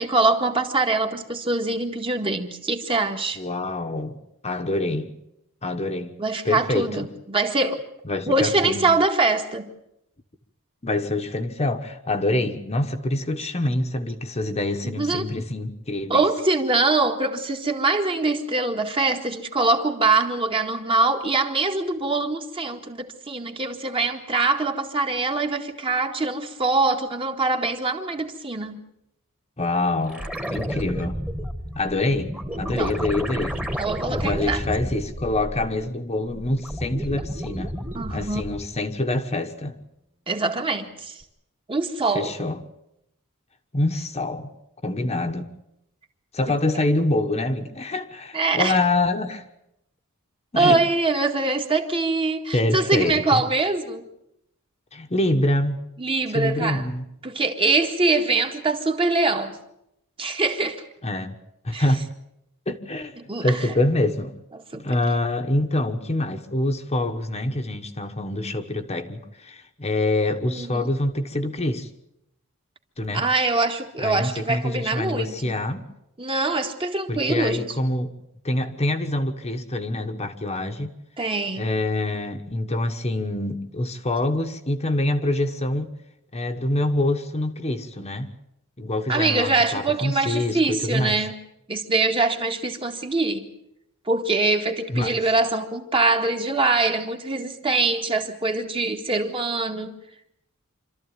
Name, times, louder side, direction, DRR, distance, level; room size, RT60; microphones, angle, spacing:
voice 1, 0.0-3.4 6.2-7.8 8.3-9.7 14.8-15.3 16.1-28.8 32.7-33.0 33.8-34.6 37.9-38.4 40.3-41.2 41.7-42.3 46.5-46.6 48.3-48.8 50.5-54.0 56.0-56.8 57.2-59.6 60.2-60.8 61.7-61.8 63.2-63.7 64.5-64.8 70.5-71.0 73.1-75.6 76.2-77.7 81.2-81.7 89.1-91.3 91.7-93.4 94.1-99.9, right 3 dB, 25° right, 1.9 m, -23 dB
voice 2, 3.4-5.1 5.6-6.1 6.4-7.1 8.0-8.9 10.8-16.2 29.6-31.2 31.7-33.6 34.1-37.7 38.1-39.7 42.1-42.6 43.7-44.5 44.8-45.5 46.3-49.4 50.5-50.8 52.5-53.4 54.9-55.8 56.3-57.1 61.0-61.3 61.6-62.1 62.7-64.3 64.7-71.9 73.0-73.2 74.0-75.9 77.1-78.1 78.4-80.9 81.6-85.9 86.3-88.3 88.8-91.2 94.9-95.1, left 2 dB, 30° left, 1.3 m, -25 dB
sound 1, 30.1-35.9 36.3-38.8 41.2-41.3, equal, 5° right, 1.7 m, -31 dB
26.5 x 13.5 x 9.1 m
head